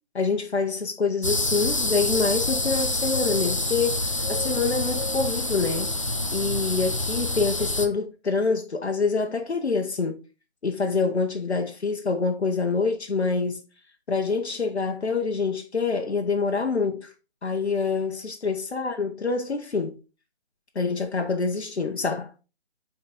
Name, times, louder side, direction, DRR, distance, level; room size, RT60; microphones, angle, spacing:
voice 1, 0.1-5.9 6.3-10.2 10.6-13.6 14.1-17.1 17.4-19.9 20.7-22.3, left 4 dB, 85° left, 1.1 m, -26 dB
sound 1, 1.2-7.9, left 2 dB, 30° left, 0.4 m, -27 dB
5.5 x 4.2 x 4.3 m
figure-of-eight pair, 160°, 32 cm